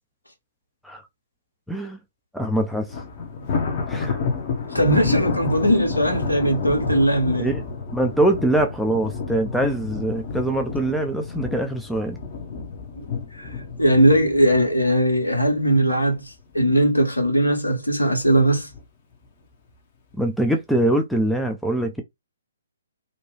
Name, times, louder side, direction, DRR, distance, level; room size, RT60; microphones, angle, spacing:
voice 1, 1.7-2.0 2.3-3.0 3.9-4.2 7.4-7.7 7.9-12.2 20.1-22.0, right 1 dB, ahead, 0.4 m, -23 dB
Thunder, 2.9-16.2 16.6-16.9 17.3-17.4 18.2-18.8, left 4 dB, 40° left, 0.8 m, -30 dB
voice 2, 4.7-7.5 13.0-13.1 13.4-13.5 13.8-16.2 16.5-18.7, right 1 dB, 90° left, 1.3 m, -19 dB
2.8 x 2.2 x 3.1 m
figure-of-eight pair, 130°, 0 cm